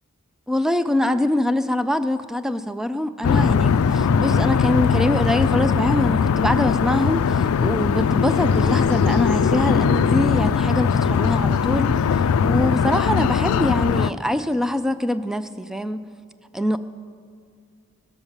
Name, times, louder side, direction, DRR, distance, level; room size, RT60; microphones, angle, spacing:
voice 1, 0.5-12.0 12.4-16.0 16.5-16.8, left 1 dB, ahead, 11 dB, 0.4 m, -24 dB
sound 1, 3.2-14.1, left 6 dB, 70° left, 0.3 m, -20 dB
17.0 x 6.8 x 7.2 m, 2.2 s
head